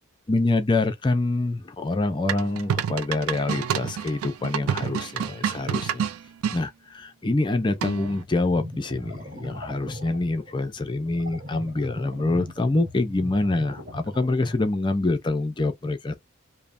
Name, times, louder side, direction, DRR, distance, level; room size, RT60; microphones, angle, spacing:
voice 1, 0.3-6.1 6.5-16.1, left 2 dB, 20° left, 0.4 m, -26 dB
sound 1, 2.3-6.6 7.8-8.2, right 8 dB, 85° right, 0.4 m, -28 dB
sound 2, 7.6-14.7, left 1 dB, 40° right, 1.1 m, -39 dB
3.1 x 2.1 x 2.4 m
head